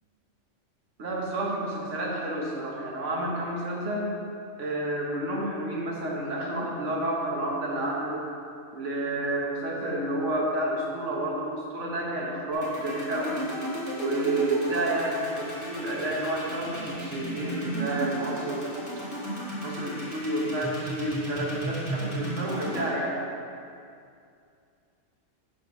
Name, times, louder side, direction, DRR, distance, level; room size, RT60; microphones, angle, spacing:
voice 1, 1.0-4.1 4.6-8.2 8.7-13.5 13.9-18.7 19.6-23.2, right 1 dB, 70° right, -3 dB, 1.4 m, -30 dB
sound 1, 12.5-22.8, right 1 dB, 15° left, 1.5 m, -34 dB
6.1 x 3.9 x 5.8 m, 2.4 s
omnidirectional pair, 1.3 m